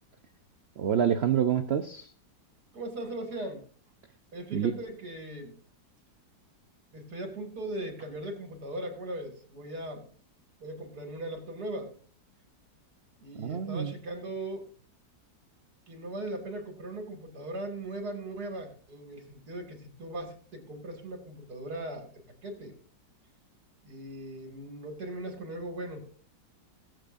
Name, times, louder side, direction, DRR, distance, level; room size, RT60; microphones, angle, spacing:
voice 1, 0.8-2.1 4.5-4.7 13.4-14.0, right 9 dB, 85° right, 9 dB, 0.5 m, -27 dB
voice 2, 2.7-3.6 4.3-5.6 6.9-10.1 10.6-12.0 13.2-14.7 15.9-22.1 22.4-22.7 23.8-26.1, right 1 dB, 60° right, 5 dB, 2.8 m, -39 dB
21.5 x 7.8 x 2.6 m, 0.42 s
omnidirectional pair, 2.0 m